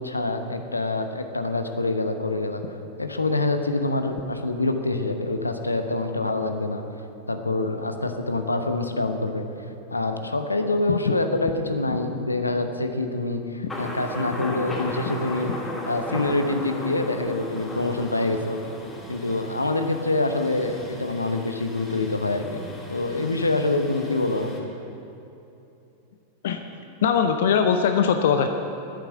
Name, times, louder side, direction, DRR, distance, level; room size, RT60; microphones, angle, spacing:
voice 1, 0.0-2.6 3.0-6.8 7.3-9.5 9.9-15.5 15.9-18.6 19.1-22.6 22.9-24.7, left 2 dB, 80° left, 7 dB, 0.9 m, -26 dB
Thunder, 13.7-24.6, left 1 dB, 10° left, 2.7 m, -36 dB
voice 2, 27.0-28.5, left 7 dB, 60° left, 6 dB, 0.7 m, -21 dB
10.5 x 8.9 x 9.8 m, 2.9 s
figure-of-eight pair, 90°, 0 cm